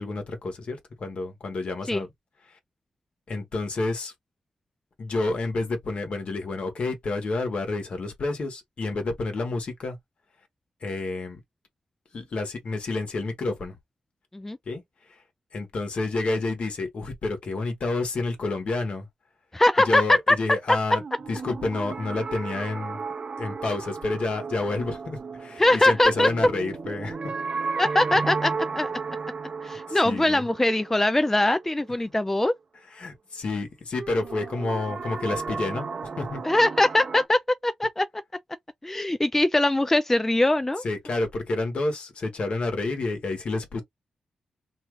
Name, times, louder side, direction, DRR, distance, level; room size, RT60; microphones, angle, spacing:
voice 1, 0.0-2.1 2.5-2.6 3.3-4.1 5.0-10.0 10.8-11.4 12.1-13.8 14.7-14.8 15.1-15.2 15.5-19.1 19.8-21.0 21.3-23.0 23.4-27.1 29.6-30.4 33.0-36.4 40.8-43.8, left 2 dB, 60° left, 1.2 m, -29 dB
voice 2, 19.5-20.4 25.6-26.3 27.8-28.9 29.6-32.5 36.4-38.1 38.8-40.8, left 1 dB, 15° left, 0.3 m, -22 dB
sound 1, 21.0-31.9 34.0-37.3, right 4 dB, 50° right, 0.5 m, -34 dB
2.7 x 2.3 x 3.0 m
cardioid pair, 65°, 2 cm